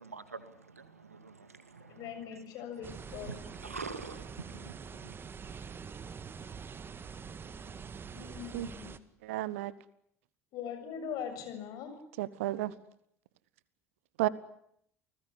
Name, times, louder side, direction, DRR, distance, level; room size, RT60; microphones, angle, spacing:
voice 1, 0.0-2.4 2.7-2.9 3.2-5.2, right 4 dB, 85° right, 2.1 m, -46 dB
voice 2, 1.9-3.3 8.1-9.0 10.5-12.0, left 8 dB, 55° left, 7.0 m, -41 dB
sound 1, 2.8-9.0, right 6 dB, 30° right, 1.8 m, -45 dB
voice 3, 9.2-9.7 12.2-12.7 14.2-14.3, right 16 dB, 65° right, 1.3 m, -32 dB
30.0 x 19.5 x 10.0 m
figure-of-eight pair, 60°, 8 cm